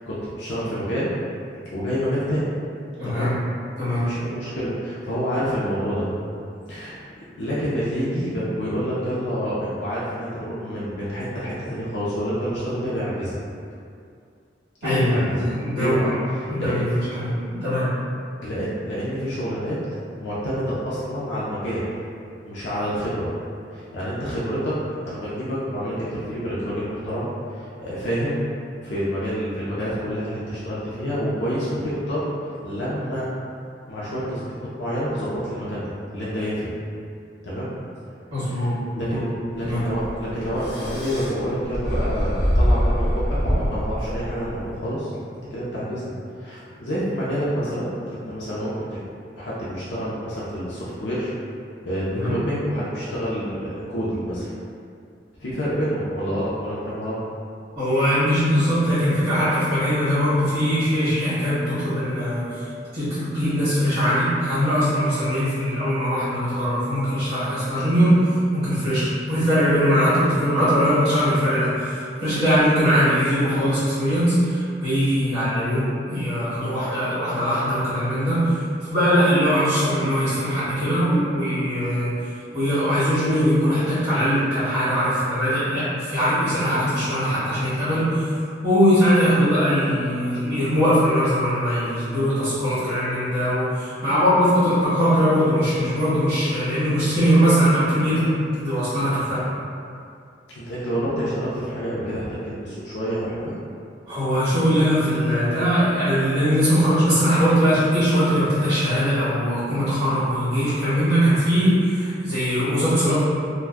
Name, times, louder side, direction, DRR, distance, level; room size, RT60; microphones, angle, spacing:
voice 1, 0.1-1.1 1.7-2.5 3.0-3.3 3.9-6.1 6.7-7.0 7.4-13.4 14.8-15.5 15.7-16.1 16.6-17.0 18.4-19.8 20.2-21.9 22.4-23.3 23.7-28.4 28.8-33.3 33.9-34.5 34.8-36.7 37.4-37.7 38.4-39.3 39.6-43.2 43.6-45.1 45.5-49.0 49.4-51.3 51.8-54.5 55.4-57.2 100.5-103.5, equal, 80° left, -9 dB, 0.6 m, -28 dB
voice 2, 3.0-3.3 3.8-4.1 14.8-16.1 16.5-17.9 38.3-39.2 39.6-39.8 52.1-52.4 57.7-62.5 62.9-75.8 76.1-82.2 82.5-88.3 88.6-98.3 98.6-99.4 104.1-113.2, equal, 35° right, -15 dB, 1.3 m, -21 dB
sound 1, 39.6-44.8, equal, 55° left, 0.9 m, -24 dB
2.5 x 2.2 x 3.5 m, 2.4 s
head